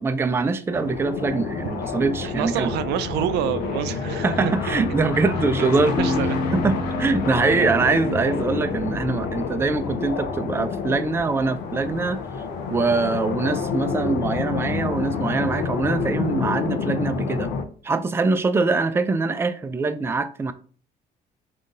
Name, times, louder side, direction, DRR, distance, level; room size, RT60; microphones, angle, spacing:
voice 1, 0.0-2.7 4.2-5.9 6.5-12.2 12.7-17.5 17.8-20.5, right 4 dB, 15° right, 0.4 m, -23 dB
sound 1, 0.7-17.6, left 5 dB, 85° left, 0.7 m, -28 dB
voice 2, 1.8-4.8 5.6-6.3, right 11 dB, 80° right, 0.4 m, -28 dB
sound 2, 6.0-10.6, equal, 20° left, 0.8 m, -32 dB
3.7 x 2.7 x 3.7 m
cardioid pair, 110°, 17 cm